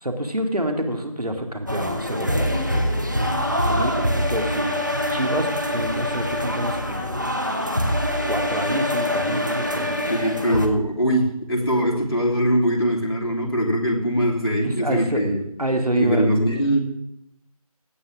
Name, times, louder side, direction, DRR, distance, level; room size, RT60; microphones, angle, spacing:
voice 1, 0.0-2.9 3.6-4.7 5.1-7.1 8.3-10.0 14.6-15.2 15.6-16.2, right 1 dB, 80° right, 5 dB, 2.1 m, -27 dB
sound 1, 1.7-10.7, equal, 30° right, 0.9 m, -24 dB
voice 2, 10.1-15.4 15.9-16.8, equal, 40° left, -3 dB, 2.8 m, -22 dB
16.5 x 9.8 x 3.6 m, 0.79 s
figure-of-eight pair, 175°, 19 cm